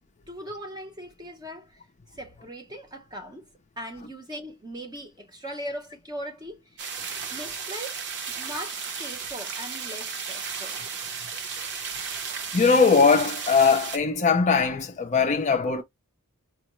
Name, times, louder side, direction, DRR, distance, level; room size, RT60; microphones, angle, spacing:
voice 1, 0.3-1.8 2.1-3.5 3.8-6.8 7.3-8.0 8.3-10.9, equal, 20° right, 0.7 m, -39 dB
sound 1, 6.8-14.0, right 6 dB, 50° right, 0.7 m, -34 dB
voice 2, 12.5-15.8, left 5 dB, 30° left, 0.5 m, -20 dB
4.5 x 2.1 x 3.0 m
head